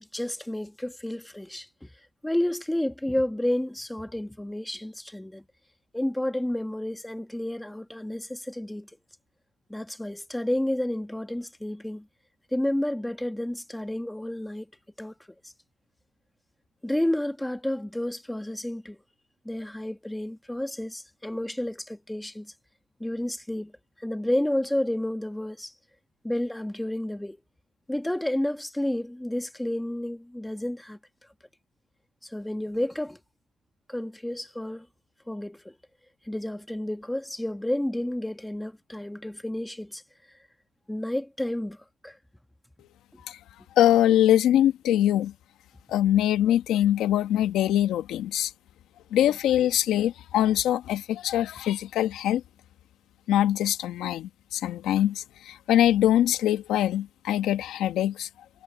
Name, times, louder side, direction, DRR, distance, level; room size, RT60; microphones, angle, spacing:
voice 1, 0.0-1.9 2.2-5.4 5.9-8.9 9.7-12.1 12.5-14.7 15.0-15.1 15.4-15.5 16.8-19.0 19.4-22.5 23.0-23.7 24.0-25.7 26.2-27.4 27.9-31.0 32.2-33.2 33.9-34.9 35.3-35.7 36.2-40.0 40.9-42.2 43.1-43.2, left 1 dB, 5° left, 1.6 m, -30 dB
voice 2, 43.8-45.3 45.9-48.5 49.1-52.4 53.3-58.3, left 12 dB, 85° left, 1.4 m, -23 dB
cardioid pair, 90°, 0 cm